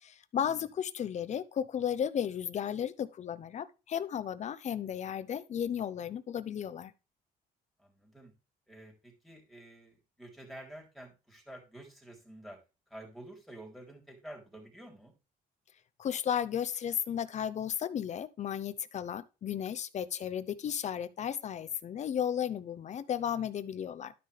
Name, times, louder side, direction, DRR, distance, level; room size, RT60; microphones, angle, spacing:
voice 1, 0.0-6.9 16.0-24.1, left 9 dB, 45° left, 0.7 m, -34 dB
voice 2, 7.8-8.3 8.7-12.6 12.9-15.1, right 1 dB, ahead, 3.3 m, -50 dB
12.0 x 5.6 x 3.4 m
cardioid pair, 110°, 17 cm